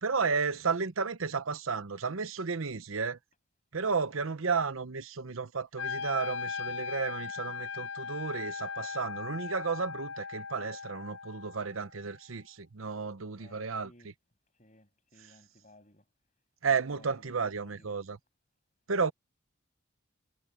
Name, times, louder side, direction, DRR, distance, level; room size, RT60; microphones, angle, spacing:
voice 1, 0.0-3.2 3.7-14.1 15.2-15.3 16.6-18.2 18.9-19.1, right 5 dB, 85° right, 0.9 m, -33 dB
Wind instrument woodwind instrument, 5.8-11.8, left 5 dB, 65° left, 0.5 m, -38 dB
voice 2, 13.4-14.1 14.6-16.0 16.6-17.9, left 1 dB, 35° left, 7.0 m, -59 dB
head